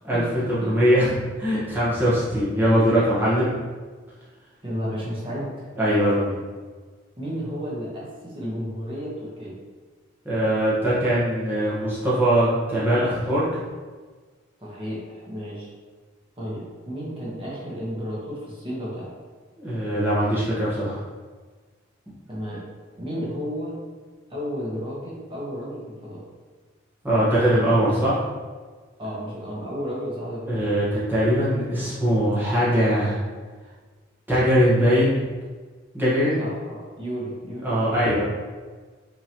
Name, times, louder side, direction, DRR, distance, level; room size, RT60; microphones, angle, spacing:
voice 1, 0.5-3.5 5.8-6.4 10.2-13.5 19.6-21.0 27.0-28.2 30.5-33.2 34.3-35.1 35.9-36.4 37.6-38.2, equal, 10° right, -11 dB, 1.1 m, -21 dB
voice 2, 4.6-5.7 7.2-9.6 14.6-15.7 16.3-19.1 22.3-22.6 23.0-23.7 24.3-26.2 29.0-30.7 36.4-38.1, equal, 25° right, -6 dB, 1.2 m, -32 dB
5.8 x 2.9 x 3.0 m, 1.4 s
head